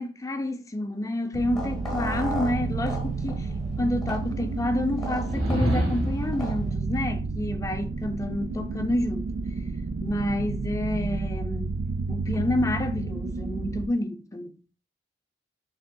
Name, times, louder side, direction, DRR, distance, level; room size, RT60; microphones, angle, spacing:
voice 1, 0.0-3.5 3.8-9.3 10.0-11.8 12.1-14.6, left 1 dB, 15° left, 0.4 m, -29 dB
sound 1, 1.3-13.9, right 3 dB, 55° right, 0.3 m, -31 dB
sound 2, 1.5-6.7, left 1 dB, ahead, 1.2 m, -38 dB
sound 3, 5.2-6.4, equal, 85° right, 1.7 m, -26 dB
5.3 x 3.4 x 2.2 m
head